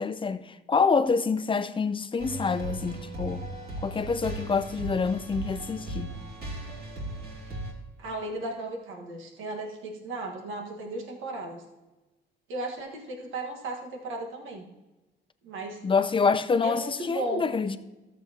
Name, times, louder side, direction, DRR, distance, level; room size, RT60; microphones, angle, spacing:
voice 1, 0.0-3.4 3.8-6.1 15.8-17.8, left 5 dB, 25° left, 0.6 m, -26 dB
sound 1, 2.2-7.7, right 2 dB, 50° right, 2.6 m, -37 dB
voice 2, 8.0-11.6 12.5-14.7 15.4-15.8 16.6-17.4, right 2 dB, 80° right, 1.5 m, -35 dB
13.5 x 7.3 x 2.9 m
cardioid pair, 90°, 20 cm